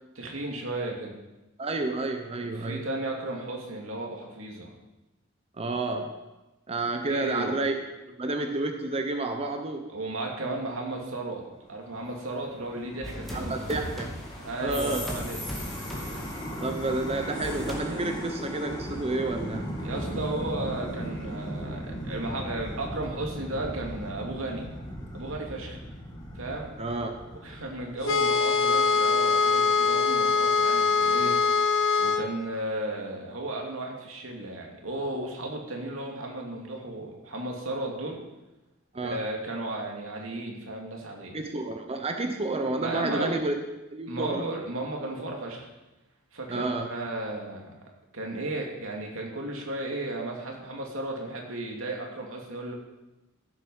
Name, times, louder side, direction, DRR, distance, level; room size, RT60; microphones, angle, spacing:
voice 1, 0.2-1.1 2.4-4.7 7.0-7.5 9.9-11.4 11.7-13.6 14.4-15.4 17.9-18.2 19.8-24.7 25.1-25.8 26.3-26.7 27.4-31.4 32.0-38.2 39.0-41.3 42.8-43.4 44.1-45.7 46.3-47.7 48.1-52.8, right 2 dB, 90° right, 0 dB, 2.6 m, -34 dB
voice 2, 1.6-2.8 5.6-6.2 6.7-7.7 8.1-9.9 13.3-14.1 14.6-15.1 16.6-19.7 26.8-27.1 38.9-39.3 41.3-43.6 43.9-44.5 46.5-46.9, right 2 dB, 30° right, 5 dB, 0.9 m, -30 dB
sound 1, 11.6-28.1, equal, 20° left, 2.6 m, -38 dB
sound 2, 13.0-16.7 17.4-17.7, equal, ahead, 2.5 m, -37 dB
sound 3, 28.0-32.3, left 5 dB, 75° left, 0.9 m, -23 dB
15.0 x 8.1 x 5.6 m, 1.0 s
head